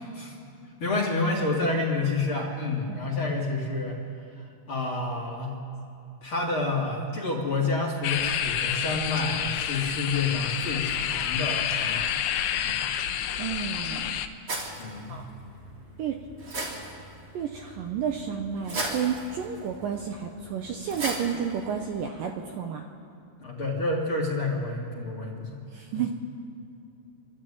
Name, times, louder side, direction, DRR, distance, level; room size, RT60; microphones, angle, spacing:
voice 1, 0.8-4.0 4.3-5.6 6.2-12.2 12.6-12.9 14.8-15.2 23.4-25.6 25.9-26.0, left 3 dB, 35° left, -2 dB, 2.5 m, -29 dB
sound 1, 8.0-14.3, left 9 dB, 75° left, 2.3 m, -29 dB
voice 2, 13.4-14.2 15.1-15.2 16.0-16.2 17.3-22.8 25.7-26.1, right 7 dB, 75° right, 3 dB, 2.2 m, -31 dB
sound 2, 14.5-22.0, right 2 dB, 35° right, 3.3 m, -38 dB
27.0 x 12.5 x 8.7 m, 2.5 s
omnidirectional pair, 4.7 m